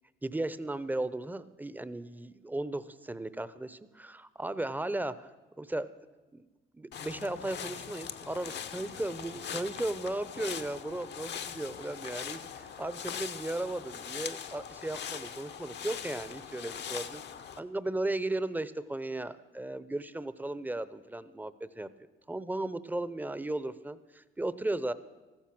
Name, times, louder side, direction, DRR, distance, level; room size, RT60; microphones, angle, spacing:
voice 1, 0.2-5.3 5.6-5.9 6.3-6.5 6.7-17.2 17.6-21.9 22.3-24.9, right 2 dB, 10° right, 15 dB, 0.7 m, -36 dB
sound 1, 6.9-17.6, left 8 dB, 60° left, 0.9 m, -41 dB
14.5 x 13.5 x 6.0 m, 1.2 s
cardioid pair, 90°, 20 cm